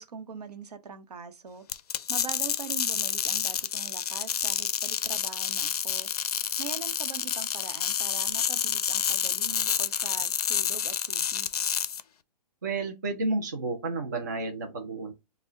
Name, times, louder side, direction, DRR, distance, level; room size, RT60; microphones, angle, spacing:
voice 1, 0.0-1.6 2.1-6.1 6.6-11.5, right 6 dB, 70° right, 0.8 m, -42 dB
sound 1, 1.7-12.0, left 8 dB, 65° left, 0.4 m, -29 dB
voice 2, 12.6-15.1, right 3 dB, 25° right, 0.4 m, -31 dB
4.7 x 2.1 x 3.7 m
hypercardioid pair, 175°, 21 cm